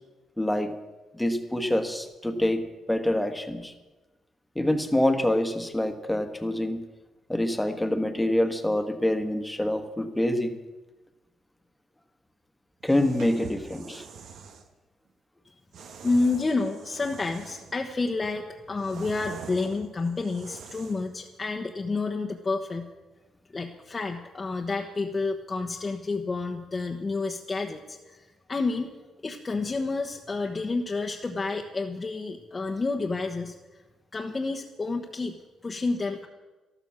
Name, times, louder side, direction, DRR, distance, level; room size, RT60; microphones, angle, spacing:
voice 1, 0.4-0.7 1.1-3.7 4.5-6.8 7.3-10.6 12.8-14.0, left 1 dB, 5° left, 7 dB, 1.4 m, -26 dB
sound 1, 12.8-14.7 15.7-17.8 18.2-21.1, right 6 dB, 70° right, 1.4 m, -45 dB
voice 2, 16.0-22.9 23.5-28.9 29.2-33.5 34.1-35.3 35.6-36.3, left 3 dB, 25° left, 1 dB, 1.1 m, -29 dB
13.0 x 13.0 x 6.3 m, 1.2 s
cardioid pair, 90°, 0 cm